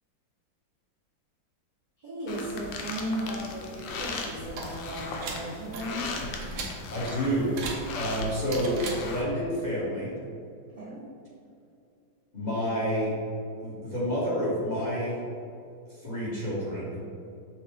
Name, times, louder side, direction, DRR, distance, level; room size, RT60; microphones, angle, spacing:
voice 1, 2.0-6.1 10.7-11.0, equal, 55° right, -10 dB, 0.5 m, -36 dB
sound 1, 2.3-9.2, left 3 dB, 80° left, 1.3 m, -38 dB
sound 2, 4.4-9.4, right 3 dB, 80° right, 1.4 m, -39 dB
voice 2, 6.9-10.1 12.3-13.1 13.6-15.2 15.9-17.0, equal, 25° left, -10 dB, 1.1 m, -29 dB
6.1 x 2.4 x 3.5 m, 2.5 s
omnidirectional pair, 2.1 m